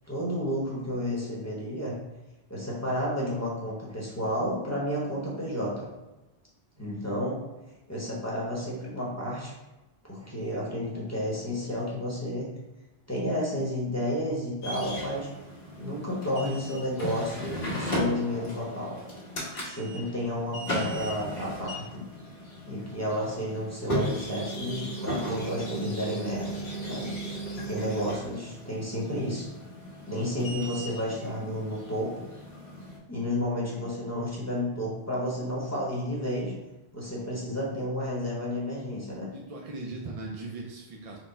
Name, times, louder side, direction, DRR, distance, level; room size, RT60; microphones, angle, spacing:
voice 1, 0.1-1.9 2.5-5.9 6.8-7.4 7.9-9.5 10.1-12.5 13.1-15.3 15.8-19.0 19.6-22.1 22.7-26.5 26.8-29.4 30.1-32.1 33.1-36.5 36.9-39.3, equal, 15° left, -7 dB, 0.8 m, -31 dB
sound 1, 14.6-33.0, equal, 80° left, 1.3 m, -36 dB
voice 2, 39.3-41.2, right 3 dB, 50° right, -1 dB, 0.4 m, -38 dB
4.2 x 2.1 x 3.9 m, 1.1 s
omnidirectional pair, 1.0 m